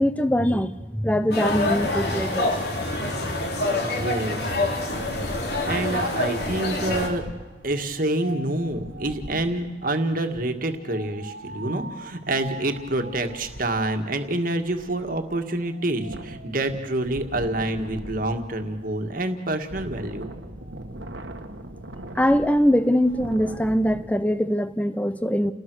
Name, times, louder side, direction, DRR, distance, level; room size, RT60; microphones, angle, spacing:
voice 1, 0.0-2.5 3.0-3.8 11.7-11.8 22.1-25.5, equal, 10° left, 13 dB, 0.8 m, -23 dB
sound 1, 1.3-7.1, left 2 dB, 55° left, 3.3 m, -26 dB
voice 2, 3.8-4.6 5.6-7.2 7.6-20.3, right 1 dB, 45° right, 6 dB, 2.0 m, -27 dB
Wind, 4.3-9.7 10.8-24.0, right 1 dB, 75° right, 1.8 m, -41 dB
30.0 x 19.5 x 6.4 m, 1.2 s
head